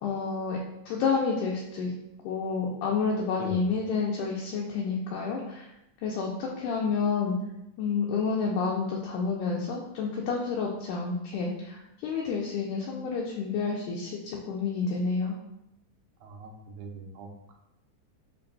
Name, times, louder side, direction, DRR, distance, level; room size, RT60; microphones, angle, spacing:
voice 1, 0.0-0.6 0.9-1.9 2.2-5.7 6.0-7.4 7.8-15.4, left 5 dB, 80° left, -2 dB, 2.0 m, -29 dB
voice 2, 16.2-17.5, right 3 dB, 80° right, 1 dB, 2.0 m, -41 dB
5.5 x 3.8 x 2.2 m, 0.84 s
omnidirectional pair, 3.8 m